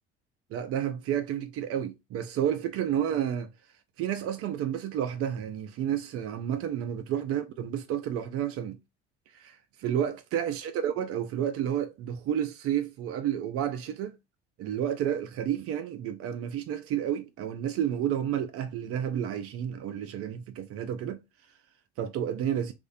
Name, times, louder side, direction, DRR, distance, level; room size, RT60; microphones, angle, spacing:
voice 1, 0.5-3.5 4.0-8.8 9.4-14.1 14.6-21.2 22.0-22.7, right 10 dB, 55° right, 0.4 m, -31 dB
2.5 x 2.1 x 2.4 m
hypercardioid pair, 70°, 29 cm